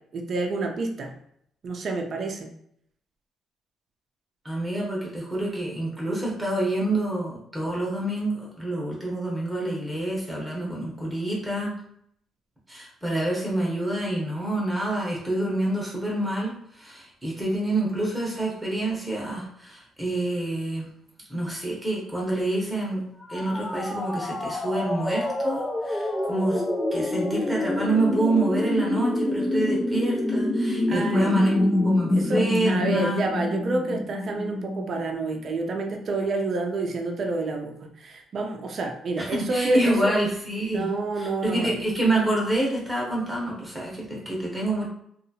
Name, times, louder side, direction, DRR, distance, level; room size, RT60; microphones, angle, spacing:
voice 1, 0.1-1.2 1.6-2.5 30.9-40.1 40.7-41.7, right 3 dB, 50° right, 2 dB, 0.5 m, -29 dB
voice 2, 4.4-11.7 12.7-20.9 21.3-23.0 23.3-26.6 26.9-31.5 31.8-33.3 39.2-40.9 41.2-44.9, right 1 dB, 15° right, -4 dB, 0.9 m, -27 dB
sound 1, 23.2-35.0, left 1 dB, 15° left, 0.3 m, -26 dB
2.7 x 2.3 x 2.7 m, 0.69 s
cardioid pair, 100°, 0 cm